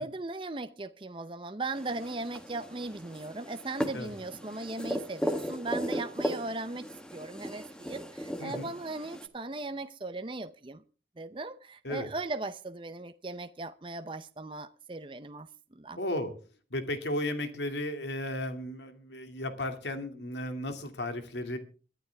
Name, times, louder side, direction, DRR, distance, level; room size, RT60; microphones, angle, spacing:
voice 1, 0.0-10.8 11.2-15.5 15.7-16.0, right 2 dB, 30° right, 0.7 m, -38 dB
sound 1, 1.7-9.3, equal, 5° left, 1.3 m, -36 dB
voice 2, 8.4-8.7 11.8-12.1 16.0-16.3 16.7-21.6, left 1 dB, 85° left, 2.4 m, -34 dB
22.5 x 11.5 x 3.4 m
head